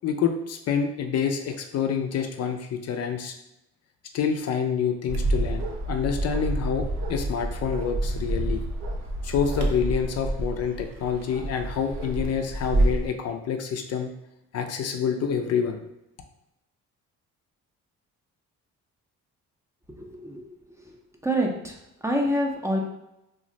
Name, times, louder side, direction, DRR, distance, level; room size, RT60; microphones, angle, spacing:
voice 1, 0.0-3.3 4.1-8.6 9.2-14.1 14.5-15.8, left 7 dB, 55° left, 5 dB, 0.4 m, -27 dB
Bark, 5.1-13.1, right 1 dB, 60° right, 0.6 m, -28 dB
voice 2, 19.9-21.0 21.2-21.8 22.0-22.8, equal, 10° right, 0 dB, 0.5 m, -27 dB
2.5 x 2.0 x 3.8 m, 0.87 s
cardioid pair, 90°, 30 cm